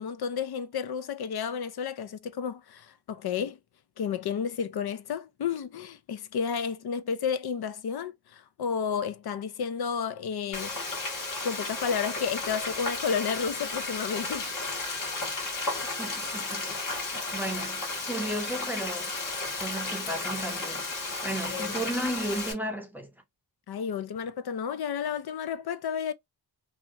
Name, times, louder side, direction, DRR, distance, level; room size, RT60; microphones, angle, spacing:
voice 1, 0.0-3.6 4.0-10.8 11.4-14.5 21.5-21.8 23.7-26.1, left 7 dB, 70° left, 0.5 m, -32 dB
Frying (food), 10.5-22.5, left 3 dB, 55° left, 1.4 m, -33 dB
voice 2, 16.0-19.1 19.6-20.9 21.2-23.1, right 1 dB, 5° right, 0.6 m, -34 dB
2.8 x 2.4 x 2.8 m
wide cardioid pair, 175°, 39 cm